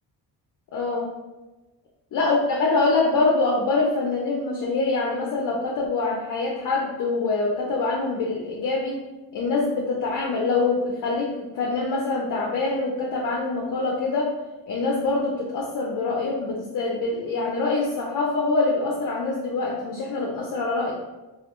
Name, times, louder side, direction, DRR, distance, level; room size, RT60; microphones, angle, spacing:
voice 1, 0.7-1.1 2.1-9.1 9.3-14.3 14.7-20.9, left 3 dB, 50° left, -1 dB, 0.5 m, -24 dB
2.3 x 2.1 x 2.9 m, 1.1 s
cardioid pair, 90°, 41 cm